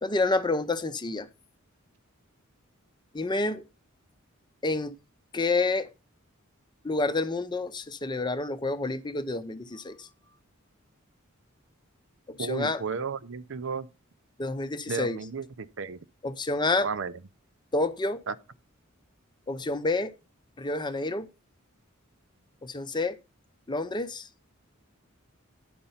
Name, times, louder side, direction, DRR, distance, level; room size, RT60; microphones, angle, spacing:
voice 1, 0.0-1.3 3.1-3.6 4.6-4.9 5.3-5.9 6.8-10.1 12.3-12.8 14.4-15.2 16.2-16.9 17.7-18.2 19.5-20.1 20.6-21.3 22.6-23.2 23.7-24.3, left 2 dB, 20° left, 0.7 m, -28 dB
voice 2, 12.4-13.9 14.9-16.0 16.8-17.1 18.3-18.4, right 5 dB, 65° right, 0.6 m, -33 dB
10.5 x 5.4 x 5.6 m
head